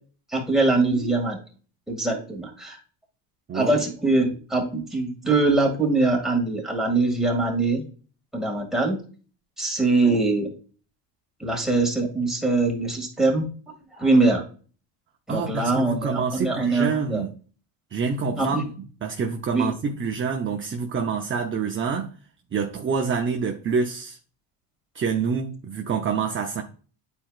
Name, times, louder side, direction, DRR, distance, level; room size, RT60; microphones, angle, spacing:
voice 1, 0.3-1.4 1.9-2.8 3.5-7.8 8.3-9.0 9.6-10.5 11.4-13.5 14.0-14.4 15.3-17.2 18.4-18.6 19.5-19.7, right 3 dB, ahead, 2.1 m, -22 dB
voice 2, 15.3-17.3 17.9-18.7 19.0-22.1 22.5-24.2 24.9-26.6, right 5 dB, 25° right, 0.6 m, -26 dB
9.6 x 4.4 x 2.4 m
cardioid pair, 120°, 49 cm